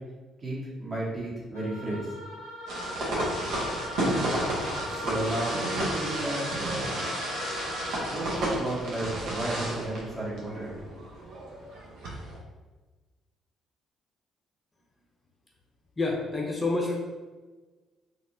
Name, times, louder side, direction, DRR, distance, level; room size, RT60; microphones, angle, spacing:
voice 1, 0.4-2.1 4.9-7.2 8.1-10.7, right 1 dB, 40° right, -6 dB, 1.4 m, -33 dB
sound 1, 1.5-8.8, left 1 dB, 90° right, 0.9 m, -38 dB
sound 2, 2.7-12.4, right 1 dB, 60° right, 0.9 m, -32 dB
voice 2, 16.0-17.0, left 3 dB, 25° left, -1 dB, 0.7 m, -28 dB
4.2 x 2.7 x 2.8 m, 1.3 s
figure-of-eight pair, 45°, 0 cm